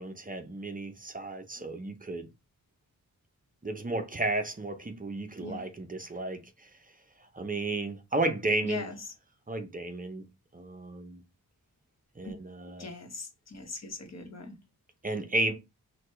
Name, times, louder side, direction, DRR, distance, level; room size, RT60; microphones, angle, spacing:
voice 1, 0.0-2.3 3.6-6.7 7.2-8.9 9.5-10.3 10.5-11.2 12.2-12.9 15.0-15.5, right 2 dB, 25° right, 0.6 m, -33 dB
voice 2, 8.6-9.0 12.2-12.3 12.8-14.6, left 3 dB, 50° left, 1.0 m, -40 dB
6.2 x 2.3 x 3.2 m
wide cardioid pair, 135°, 34 cm